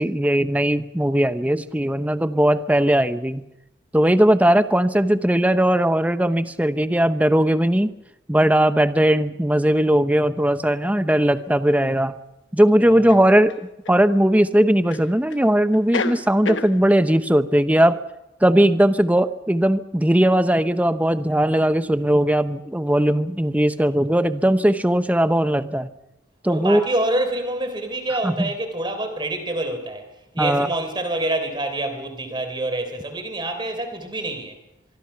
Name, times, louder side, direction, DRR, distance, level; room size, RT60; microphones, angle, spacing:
voice 1, 0.0-3.4 3.9-7.9 8.3-12.1 12.5-18.0 18.4-25.9 26.4-26.8 28.2-28.5 30.4-30.7, right 1 dB, 10° right, 12 dB, 0.7 m, -19 dB
sound 1, 11.3-11.5 13.1-14.0 14.9-15.5 15.7-16.7, left 4 dB, 80° left, 1.0 m, -30 dB
voice 2, 26.5-30.1 30.3-34.6, right 1 dB, 25° right, 7 dB, 3.5 m, -26 dB
24.5 x 23.5 x 5.7 m, 0.90 s
head